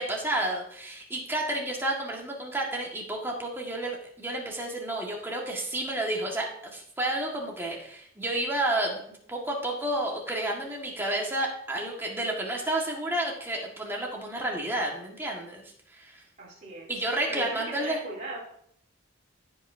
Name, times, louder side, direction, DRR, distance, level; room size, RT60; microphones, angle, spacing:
voice 1, 0.0-15.6 15.9-16.2 16.9-18.0, right 1 dB, 10° right, -2 dB, 1.8 m, -31 dB
voice 2, 16.4-18.4, right 2 dB, 40° right, -7 dB, 3.5 m, -39 dB
16.5 x 5.6 x 2.8 m, 0.67 s
head